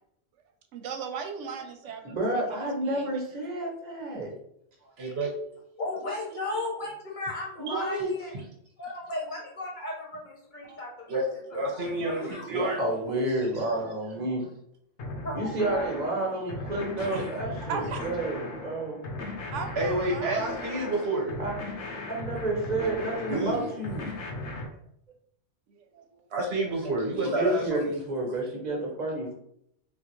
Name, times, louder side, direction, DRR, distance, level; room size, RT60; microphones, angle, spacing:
voice 1, 0.7-3.2 17.7-18.0 19.5-20.7 23.4-23.6 25.7-26.3, right 5 dB, 85° right, 5 dB, 0.9 m, -38 dB
voice 2, 2.0-4.3 4.8-4.9 7.6-8.1 10.6-10.8 12.5-14.5 15.3-19.0 21.4-21.5 22.1-24.1 27.2-29.3, right 2 dB, 40° right, -1 dB, 1.0 m, -30 dB
voice 3, 5.0-5.3 7.7-7.8 8.3-8.4 11.1-12.8 13.5-13.6 17.0-17.3 19.8-21.3 23.3-23.6 26.3-27.9, right 2 dB, 65° right, -1 dB, 1.1 m, -29 dB
voice 4, 5.8-8.3 8.8-11.2 11.5-12.5 15.2-15.9, left 2 dB, 45° left, -2 dB, 1.0 m, -36 dB
sound 1, 15.0-24.7, left 2 dB, 75° left, 1.0 m, -37 dB
3.5 x 2.3 x 3.0 m, 0.70 s
omnidirectional pair, 1.2 m